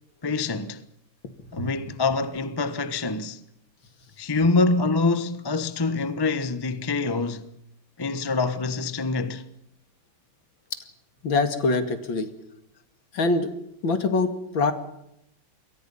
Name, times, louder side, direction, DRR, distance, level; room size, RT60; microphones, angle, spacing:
voice 1, 0.2-0.8 1.5-3.4 4.2-7.5 8.0-9.4, left 3 dB, 15° left, 0.8 m, -25 dB
voice 2, 11.2-12.3 13.1-13.5 13.8-14.7, left 3 dB, 65° left, 2.9 m, -24 dB
28.5 x 23.0 x 5.6 m
omnidirectional pair, 2.3 m